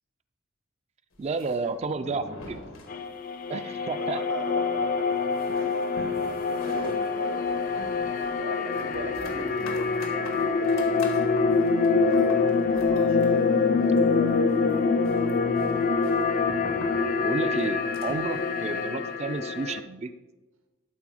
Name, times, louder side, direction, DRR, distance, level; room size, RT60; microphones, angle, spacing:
sound 1, 1.1-3.5 3.8-3.9 4.2-4.3 4.7-18.4, left 2 dB, 85° left, 1.5 m, -46 dB
voice 1, 1.2-2.6 3.5-4.2 6.8-6.9 17.2-20.1, right 4 dB, 30° right, 10 dB, 0.3 m, -31 dB
sound 2, 2.9-19.8, left 4 dB, 40° left, 0.4 m, -25 dB
voice 2, 4.0-15.5, right 2 dB, 75° right, 4 dB, 1.2 m, -40 dB
12.0 x 4.2 x 4.8 m, 1.2 s
head